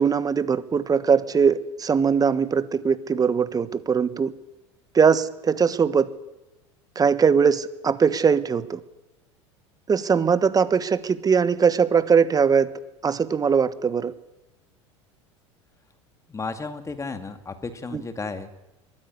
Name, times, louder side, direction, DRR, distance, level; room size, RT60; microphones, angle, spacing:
voice 1, 0.0-4.3 4.9-6.1 6.9-8.8 9.9-12.7 13.0-14.1 17.9-18.0, right 6 dB, 25° right, 15 dB, 1.4 m, -21 dB
voice 2, 16.3-18.5, left 4 dB, 20° left, 8 dB, 2.3 m, -33 dB
22.5 x 14.5 x 9.7 m, 1.0 s
hypercardioid pair, 80°, 16 cm